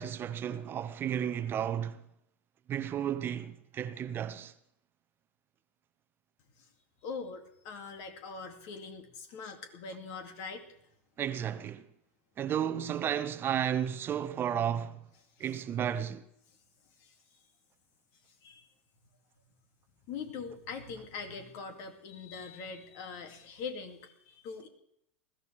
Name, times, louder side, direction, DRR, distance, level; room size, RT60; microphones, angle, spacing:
voice 1, 0.0-2.0 2.7-4.5 11.2-11.9 12.4-15.0 15.4-16.2, right 9 dB, 35° right, 0.8 m, -33 dB
voice 2, 7.0-10.6 15.4-15.5 17.0-17.1 18.4-18.7 20.1-24.7, left 5 dB, 55° left, 2.7 m, -42 dB
21.0 x 14.0 x 3.5 m
hypercardioid pair, 95°, 7 cm